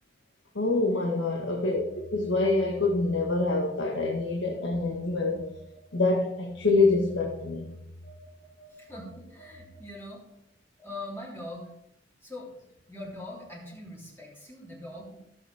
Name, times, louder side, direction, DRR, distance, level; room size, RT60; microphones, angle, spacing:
voice 1, 0.5-1.8 2.1-5.4 5.9-7.7, left 3 dB, 80° left, 0 dB, 1.6 m, -26 dB
Telephone, 1.7-3.7 4.0-9.9, equal, 55° left, 3.4 m, -49 dB
voice 2, 8.7-10.2 10.8-11.7 12.2-12.5 12.9-15.2, left 1 dB, 15° left, -4 dB, 3.5 m, -42 dB
17.0 x 7.4 x 3.5 m, 0.81 s
head